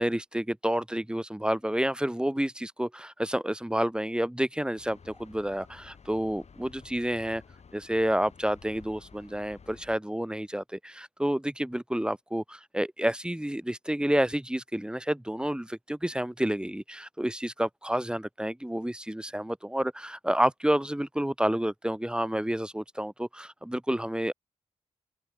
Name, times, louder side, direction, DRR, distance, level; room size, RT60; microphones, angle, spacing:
voice 1, 0.0-7.4 7.7-24.3, right 1 dB, 5° right, 2.8 m, -29 dB
sound 1, 4.8-10.0, left 5 dB, 55° left, 6.3 m, -53 dB
open air
supercardioid pair, 50°, 13 cm